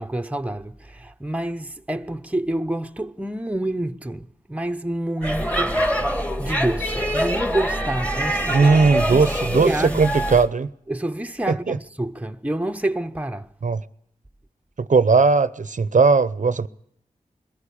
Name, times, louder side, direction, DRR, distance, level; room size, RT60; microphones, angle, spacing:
voice 1, 0.0-8.7 9.1-9.3 9.5-10.1 10.9-13.5, right 1 dB, 10° right, 0.9 m, -28 dB
Speech / Shout / Subway metro underground, 5.2-10.5, equal, 10° left, 2.1 m, -24 dB
voice 2, 8.5-10.7 11.5-11.8 13.6-13.8 14.8-16.7, right 4 dB, 60° right, 0.7 m, -18 dB
22.0 x 14.5 x 8.6 m
cardioid pair, 45°, 15 cm